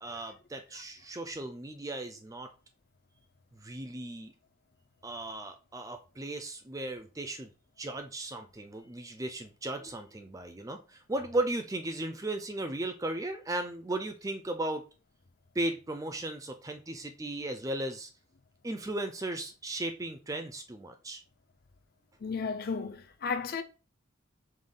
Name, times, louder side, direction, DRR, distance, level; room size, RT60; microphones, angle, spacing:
voice 1, 0.0-2.5 3.5-4.3 5.0-7.5 7.8-14.8 15.5-18.1 18.6-21.2, right 2 dB, 15° right, 0.4 m, -36 dB
voice 2, 22.2-23.6, left 5 dB, 45° left, 0.5 m, -34 dB
5.2 x 2.3 x 3.7 m
head